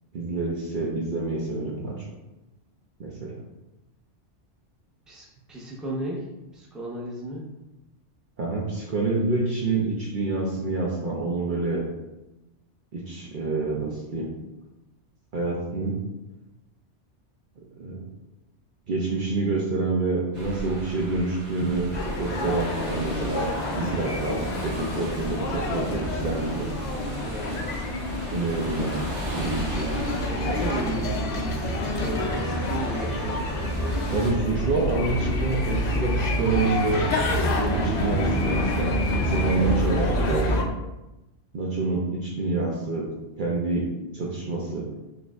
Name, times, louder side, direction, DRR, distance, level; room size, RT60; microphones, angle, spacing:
voice 1, 0.1-2.1 3.0-3.4 8.4-11.8 12.9-14.3 15.3-16.0 17.8-18.0 18.9-21.9 22.2-23.5 23.7-26.7 28.3-30.2 34.1-37.1 37.6-40.7 41.5-43.1 43.4-44.9, right 3 dB, 55° right, -3 dB, 0.7 m, -27 dB
voice 2, 5.1-6.3 6.5-7.5 27.2-27.7 30.2-34.0, right 1 dB, ahead, -4 dB, 0.6 m, -35 dB
sound 1, 20.3-34.3, right 1 dB, 75° right, 1.3 m, -39 dB
sound 2, 21.9-40.6, left 1 dB, 55° left, 0.5 m, -27 dB
6.2 x 2.5 x 2.4 m, 0.99 s
omnidirectional pair, 1.2 m